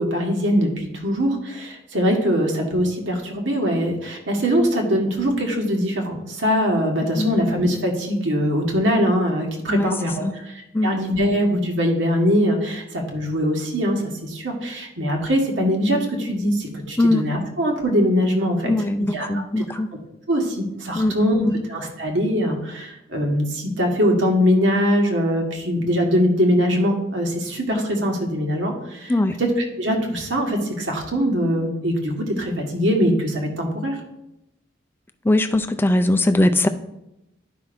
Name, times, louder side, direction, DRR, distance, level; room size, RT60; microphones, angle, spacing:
voice 1, 0.0-18.7 19.0-19.6 20.3-34.0, equal, 70° right, 1 dB, 1.5 m, -22 dB
voice 2, 7.0-7.3 9.7-9.9 10.2-10.4 10.7-10.9 17.0-17.3 18.7-19.9 21.0-21.5 29.1-29.4 35.3-36.7, left 1 dB, 10° left, 8 dB, 0.4 m, -20 dB
11.5 x 5.6 x 2.6 m, 0.88 s
head